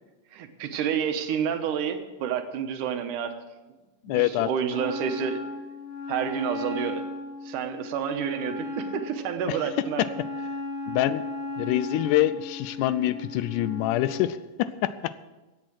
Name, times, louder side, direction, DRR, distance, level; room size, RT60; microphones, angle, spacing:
voice 1, 0.3-3.3 4.1-5.4 6.1-7.0 7.4-10.1, right 8 dB, 80° right, 7 dB, 2.5 m, -29 dB
voice 2, 4.1-4.5 9.5-9.6 10.9-11.2 11.6-15.1, left 13 dB, 80° left, 15 dB, 2.0 m, -25 dB
Wind instrument woodwind instrument, 4.7-14.3, left 2 dB, 45° left, 6.2 m, -36 dB
16.0 x 9.0 x 6.3 m, 1.1 s
omnidirectional pair, 3.7 m